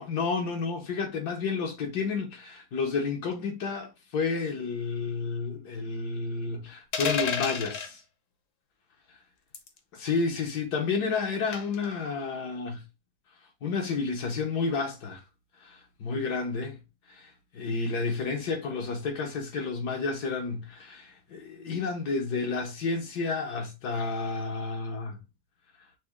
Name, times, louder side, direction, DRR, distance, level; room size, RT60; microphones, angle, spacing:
voice 1, 0.0-8.0 10.0-12.8 13.6-15.2 15.6-16.8 17.1-25.2, left 4 dB, 85° left, 1.6 m, -31 dB
sound 1, 6.9-7.9 9.5-9.8 11.5-11.8, left 6 dB, 60° left, 1.0 m, -30 dB
5.9 x 2.1 x 3.6 m
omnidirectional pair, 1.7 m